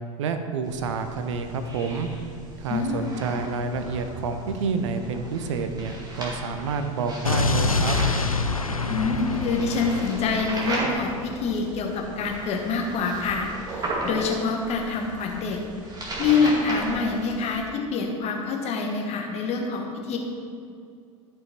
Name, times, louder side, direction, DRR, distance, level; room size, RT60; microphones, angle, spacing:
voice 1, 0.2-2.1 2.6-8.0, right 4 dB, 60° right, 7 dB, 0.7 m, -29 dB
sound 1, 0.6-17.6, right 2 dB, 20° right, 2.1 m, -36 dB
voice 2, 2.7-3.1 8.9-15.6 16.2-20.2, left 4 dB, 40° left, 1 dB, 1.4 m, -26 dB
Explosion, 7.2-11.3, left 3 dB, 90° left, 0.4 m, -26 dB
12.0 x 5.5 x 4.5 m, 2.3 s
figure-of-eight pair, 75°, 17 cm